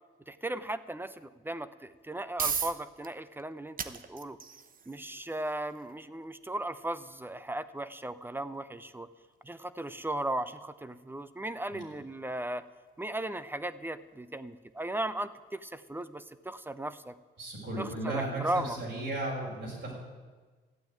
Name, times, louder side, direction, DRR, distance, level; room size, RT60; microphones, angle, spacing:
voice 1, 0.3-4.4 4.9-9.1 9.4-12.7 13.0-17.1 17.8-18.8, right 1 dB, 10° right, 14 dB, 0.7 m, -36 dB
sound 1, 1.9-16.8, right 6 dB, 45° right, 1.0 m, -43 dB
voice 2, 17.4-19.9, right 2 dB, 65° right, -3 dB, 6.1 m, -35 dB
14.0 x 9.1 x 8.9 m, 1.4 s
cardioid pair, 90°, 20 cm